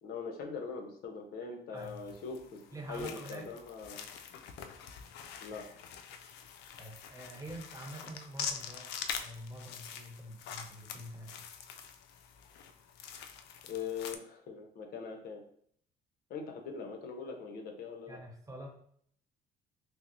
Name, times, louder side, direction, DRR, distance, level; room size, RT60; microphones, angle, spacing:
voice 1, 0.0-2.6 2.9-4.1 5.4-5.7 13.7-15.4 16.3-18.2, left 5 dB, 65° left, 3 dB, 0.7 m, -41 dB
sound 1, 1.8-14.2, left 7 dB, 85° left, 0.4 m, -45 dB
voice 2, 2.7-3.5 6.8-8.9 9.2-11.5 18.1-18.8, right 1 dB, 20° right, 1 dB, 0.9 m, -46 dB
5.6 x 2.0 x 2.6 m, 0.64 s
cardioid pair, 110°, 17 cm